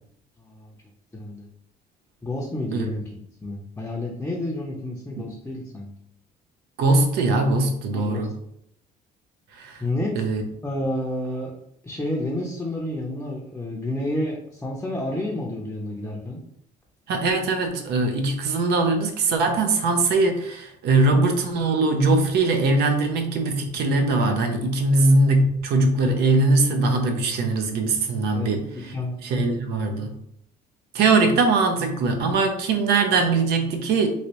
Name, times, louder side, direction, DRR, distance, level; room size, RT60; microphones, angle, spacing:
voice 1, 0.4-0.7 1.1-1.5 2.2-3.0 3.4-5.9 7.9-8.3 9.8-10.2 10.6-11.5 11.8-16.4 28.3-28.5 28.9-29.7, left 1 dB, 10° left, -2 dB, 0.6 m, -30 dB
voice 2, 6.8-8.3 9.5-9.8 10.2-10.4 17.1-28.6 29.2-30.2 30.9-34.1, right 3 dB, 75° right, 5 dB, 0.6 m, -21 dB
3.1 x 2.7 x 2.9 m, 0.72 s
cardioid pair, 110°, 17 cm